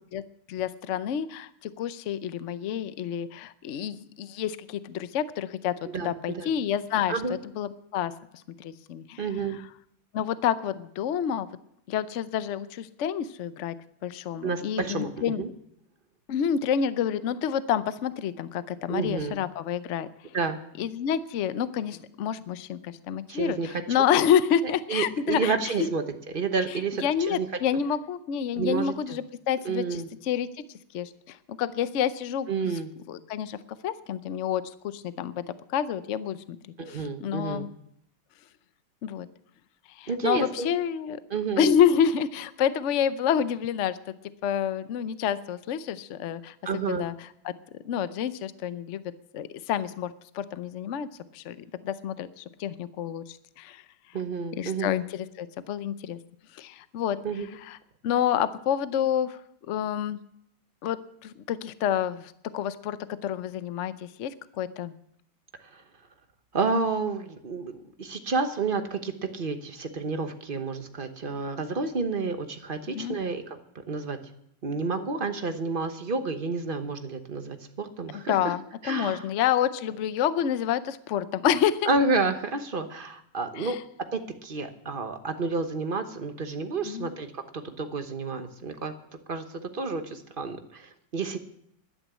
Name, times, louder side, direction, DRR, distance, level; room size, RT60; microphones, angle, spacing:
voice 1, 0.5-1.5 1.8-7.1 7.6-8.1 8.6-9.2 9.5-9.6 10.1-11.5 11.9-13.7 14.0-15.4 16.3-20.1 20.8-25.7 26.7-30.6 30.9-32.5 33.1-33.6 33.8-35.3 35.7-36.6 36.9-37.7 39.0-39.3 40.0-41.2 41.6-44.0 44.4-46.5 46.9-47.1 47.4-47.5 47.8-49.0 49.3-51.1 51.3-53.8 54.5-56.2 56.5-57.2 57.6-57.8 58.0-59.4 59.7-60.2 60.8-63.0 63.2-64.9 72.9-73.2 78.1-81.9 83.6-83.8 86.8-87.1, left 9 dB, 80° left, 14 dB, 0.6 m, -28 dB
voice 2, 5.8-6.5 7.1-7.4 9.2-9.6 14.4-15.5 18.9-19.4 20.3-20.6 23.3-23.8 24.9-27.5 28.5-29.2 29.6-30.1 32.5-32.9 36.8-37.7 40.1-40.7 41.3-41.7 46.6-47.1 54.1-54.9 57.2-57.5 65.7-65.8 66.5-74.2 74.6-78.5 78.8-79.3 81.8-83.7 84.1-88.9 89.3-91.4, right 4 dB, 35° right, 7 dB, 0.9 m, -30 dB
12.0 x 10.0 x 8.2 m, 0.72 s
omnidirectional pair, 2.2 m